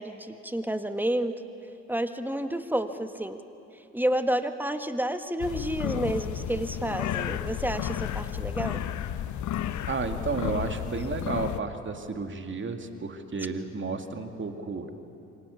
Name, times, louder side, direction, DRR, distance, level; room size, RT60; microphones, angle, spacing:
voice 1, 0.0-1.4 1.9-3.4 3.9-8.8, right 1 dB, 5° right, 8 dB, 1.6 m, -30 dB
sound 1, 5.4-11.6, left 11 dB, 50° left, 1.0 m, -32 dB
voice 2, 9.9-14.9, right 4 dB, 30° right, 6 dB, 2.4 m, -32 dB
28.0 x 24.5 x 7.1 m, 2.8 s
figure-of-eight pair, 50°, 38 cm